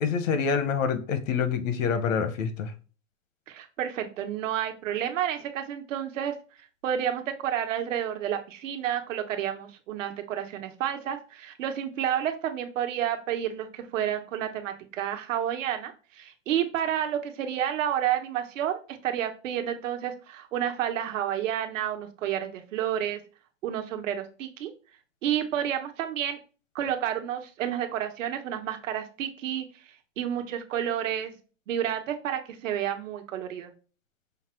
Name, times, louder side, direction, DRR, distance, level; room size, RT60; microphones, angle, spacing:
voice 1, 0.0-2.7, left 6 dB, 75° left, 10 dB, 1.0 m, -26 dB
voice 2, 3.5-6.3 6.8-23.2 23.6-24.7 25.2-26.4 26.7-29.6 30.2-31.3 31.7-33.7, right 10 dB, 75° right, 5 dB, 1.1 m, -30 dB
5.7 x 2.0 x 4.4 m, 0.35 s
supercardioid pair, 165°, 39 cm